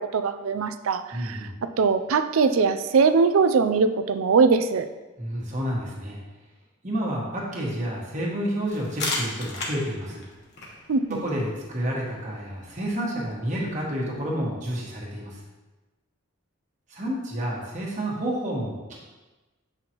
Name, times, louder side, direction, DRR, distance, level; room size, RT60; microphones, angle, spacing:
voice 1, 0.0-1.4 1.8-4.8 10.9-11.2, right 5 dB, 85° right, 10 dB, 0.4 m, -21 dB
voice 2, 1.1-1.5 5.2-6.2 6.8-10.2 11.2-15.4 16.9-19.0, equal, 35° right, -3 dB, 1.5 m, -30 dB
sound 1, 8.7-14.2, left 2 dB, 55° left, 1.3 m, -37 dB
7.8 x 5.6 x 3.0 m, 1.2 s
head